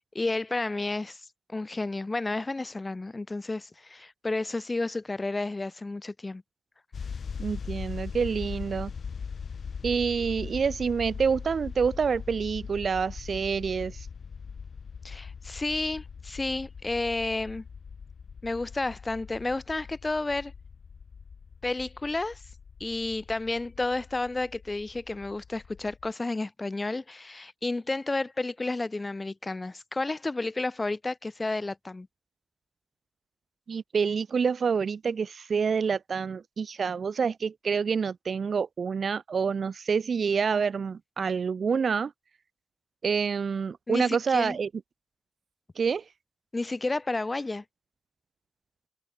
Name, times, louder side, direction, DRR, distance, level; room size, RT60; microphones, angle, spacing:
voice 1, 0.1-1.2 1.5-6.4 15.0-17.6 18.4-20.5 21.6-22.4 22.8-32.1 43.9-44.6 46.5-47.6, left 2 dB, 30° left, 0.5 m, -31 dB
sound 1, 6.9-26.1, left 6 dB, 65° left, 0.8 m, -41 dB
voice 2, 7.4-8.9 9.8-14.1 33.7-42.1 43.0-44.7 45.8-46.0, right 6 dB, 65° right, 0.5 m, -27 dB
supercardioid pair, 40°, 0 cm